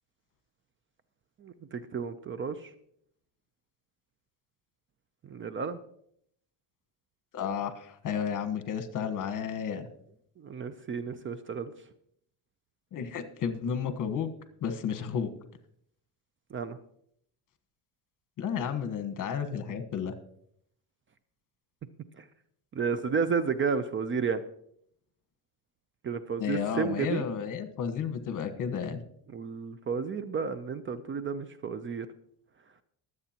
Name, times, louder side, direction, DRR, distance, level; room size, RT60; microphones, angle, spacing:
voice 1, 1.4-2.7 5.2-5.8 10.4-11.7 16.5-16.8 22.2-22.3 22.7-24.4 26.0-27.3 29.3-32.1, right 5 dB, 30° right, 13 dB, 0.6 m, -32 dB
voice 2, 7.3-9.9 12.9-14.3 14.6-15.3 18.4-20.1 26.4-29.0, left 7 dB, 50° left, 8 dB, 1.3 m, -32 dB
23.0 x 8.1 x 2.9 m, 0.69 s
cardioid pair, 120°, 41 cm